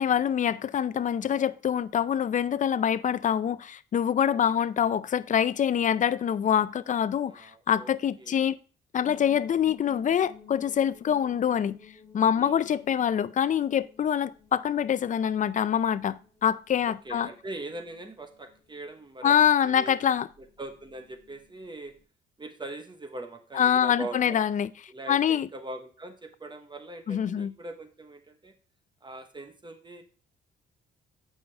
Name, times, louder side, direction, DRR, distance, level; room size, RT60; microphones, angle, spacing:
voice 1, 0.0-8.6 8.9-11.8 12.1-17.3 19.2-20.3 23.5-24.7 25.1-25.5 27.1-27.5, left 9 dB, 40° left, 0.4 m, -25 dB
voice 2, 7.2-8.4 12.3-12.8 16.9-19.4 19.6-20.0 20.4-21.9 22.4-24.4 24.9-28.5 29.0-30.0, right 2 dB, 25° right, 1.0 m, -41 dB
sound 1, 9.0-22.0, left 7 dB, 15° left, 3.3 m, -55 dB
8.5 x 5.6 x 3.3 m
cardioid pair, 90°, 20 cm